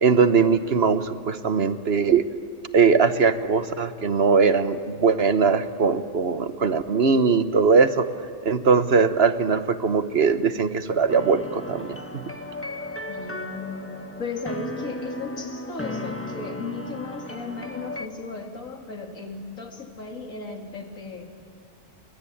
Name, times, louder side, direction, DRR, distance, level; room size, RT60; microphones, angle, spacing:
voice 1, 0.0-2.3 2.7-8.0 8.4-12.2, right 5 dB, 50° right, 11 dB, 1.2 m, -20 dB
sound 1, 11.1-18.1, left 1 dB, 10° left, 1.2 m, -35 dB
voice 2, 13.1-21.3, left 4 dB, 90° left, 3 dB, 2.9 m, -36 dB
30.0 x 21.0 x 8.6 m, 2.2 s
omnidirectional pair, 1.4 m